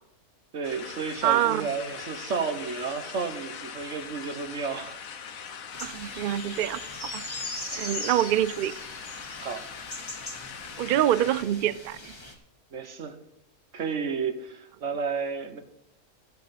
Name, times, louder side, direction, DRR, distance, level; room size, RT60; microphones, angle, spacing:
voice 1, 0.5-5.0 9.4-9.6 12.7-13.2 13.7-15.6, right 5 dB, 60° right, 8 dB, 1.5 m, -32 dB
sound 1, 0.6-11.4, left 7 dB, 75° left, 1.4 m, -41 dB
voice 2, 1.2-1.7 5.8-7.2 7.7-8.7 10.8-12.1, right 12 dB, 90° right, 17 dB, 0.4 m, -26 dB
sound 2, 5.7-12.3, left 2 dB, 20° left, 1.6 m, -40 dB
15.0 x 7.6 x 4.2 m, 0.86 s
omnidirectional pair, 1.5 m